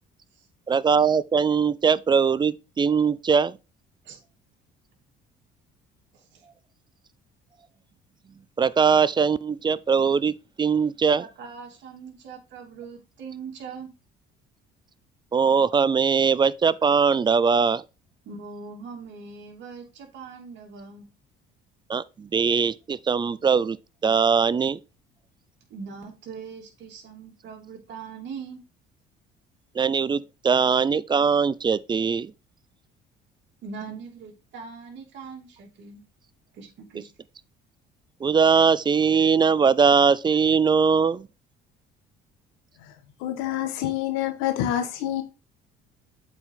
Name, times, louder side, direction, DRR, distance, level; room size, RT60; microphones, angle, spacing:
voice 1, 0.7-3.6 8.6-11.3 15.3-17.8 21.9-23.8 24.0-24.8 29.8-32.3 38.2-41.3, right 6 dB, 20° right, 0.4 m, -21 dB
voice 2, 11.2-13.9 18.2-21.1 25.7-28.6 33.6-36.1 36.5-37.1, right 5 dB, 65° right, 2.8 m, -41 dB
voice 3, 43.2-45.2, left 11 dB, 85° left, 1.4 m, -27 dB
7.8 x 4.6 x 3.8 m
supercardioid pair, 85°, 20 cm